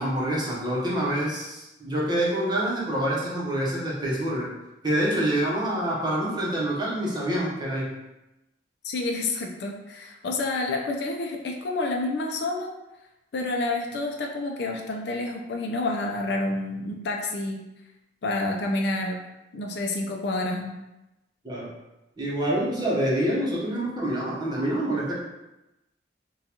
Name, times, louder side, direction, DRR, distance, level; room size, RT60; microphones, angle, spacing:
voice 1, 0.0-4.5 4.8-7.9 21.4-21.7 22.2-25.2, right 1 dB, 25° right, -6 dB, 0.8 m, -26 dB
voice 2, 8.8-12.7 13.3-17.6 18.2-19.2 19.5-20.7, left 2 dB, 65° left, 1 dB, 0.4 m, -29 dB
3.8 x 2.3 x 2.8 m, 0.97 s
head